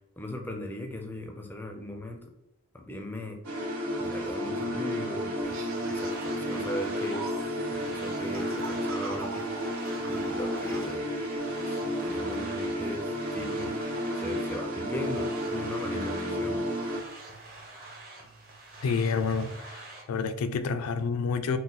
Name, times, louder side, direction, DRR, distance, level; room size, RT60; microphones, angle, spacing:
voice 1, 0.2-2.3 2.7-3.4 4.0-7.2 7.7-9.4 10.1-11.1 11.6-13.1 13.3-13.8 14.1-16.7, left 1 dB, 10° left, 0.4 m, -38 dB
sound 1, 3.4-17.0, equal, 90° right, 1.2 m, -32 dB
sound 2, 5.4-20.0, right 2 dB, 40° right, 1.0 m, -46 dB
sound 3, 5.5-10.9, right 3 dB, 65° right, 0.6 m, -44 dB
voice 2, 18.8-21.6, left 5 dB, 90° left, 0.3 m, -29 dB
3.7 x 2.1 x 4.0 m
head